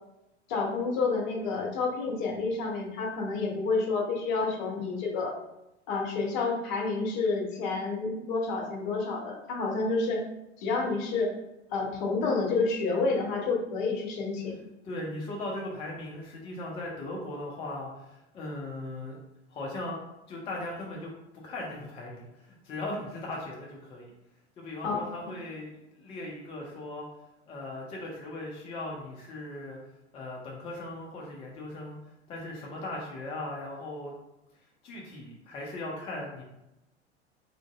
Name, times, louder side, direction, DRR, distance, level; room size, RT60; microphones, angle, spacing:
voice 1, 0.5-5.4 5.9-10.2 10.6-11.3 11.7-14.5 24.8-25.3, left 4 dB, 45° left, 0 dB, 0.8 m, -29 dB
voice 2, 14.8-19.2 19.5-20.0 20.3-24.1 24.6-27.0 27.5-29.8 30.1-32.0 32.3-34.1 34.8-36.4, left 2 dB, 15° left, -2 dB, 0.4 m, -38 dB
3.5 x 2.5 x 2.3 m, 0.91 s
figure-of-eight pair, 85°, 35 cm